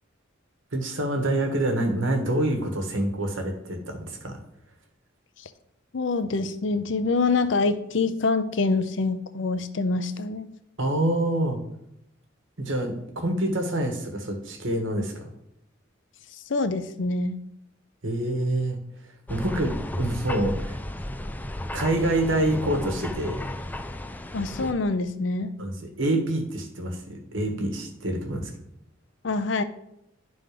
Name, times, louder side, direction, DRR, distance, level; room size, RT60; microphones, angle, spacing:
voice 1, 0.7-4.4 10.8-11.6 12.6-15.3 18.0-18.8 19.3-20.8 21.7-23.4 25.6-28.5, right 1 dB, 75° right, 4 dB, 1.5 m, -26 dB
voice 2, 5.9-10.5 16.5-17.4 24.3-25.5 29.2-29.6, left 3 dB, 65° left, 11 dB, 0.6 m, -25 dB
sound 1, 19.3-24.7, left 1 dB, 10° left, 0.4 m, -33 dB
10.5 x 3.9 x 5.0 m, 0.80 s
head